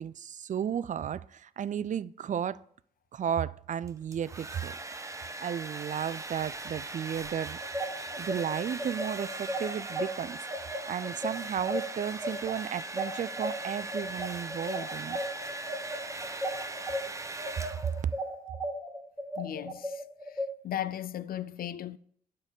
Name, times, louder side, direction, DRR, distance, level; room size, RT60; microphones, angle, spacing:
voice 1, 0.0-2.6 3.1-4.8 5.4-7.6 8.2-15.2 18.0-18.1, right 9 dB, 50° right, 0.4 m, -34 dB
Domestic sounds home sounds, 3.9-18.2, right 2 dB, 20° right, 0.7 m, -40 dB
sound 1, 7.6-17.0 17.4-20.5, equal, 5° left, 2.0 m, -35 dB
voice 2, 19.4-20.0 20.6-22.0, left 11 dB, 65° left, 0.5 m, -36 dB
8.9 x 6.7 x 3.6 m
supercardioid pair, 55°, 16 cm